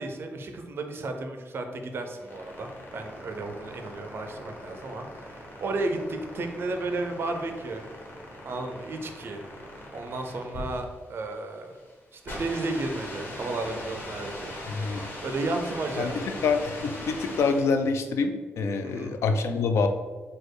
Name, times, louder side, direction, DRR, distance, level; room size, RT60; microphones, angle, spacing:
voice 1, 0.0-7.9 8.4-9.4 9.9-11.8 12.1-14.5 15.2-16.2 18.8-19.1, right 2 dB, 55° right, 5 dB, 0.6 m, -33 dB
sound 1, 2.0-17.9, left 1 dB, 45° left, 1.3 m, -40 dB
voice 2, 14.7-15.0 16.0-16.1 16.4-19.9, left 4 dB, 90° left, 7 dB, 0.4 m, -26 dB
4.3 x 2.3 x 4.7 m, 1.3 s
wide cardioid pair, 120°, 5 cm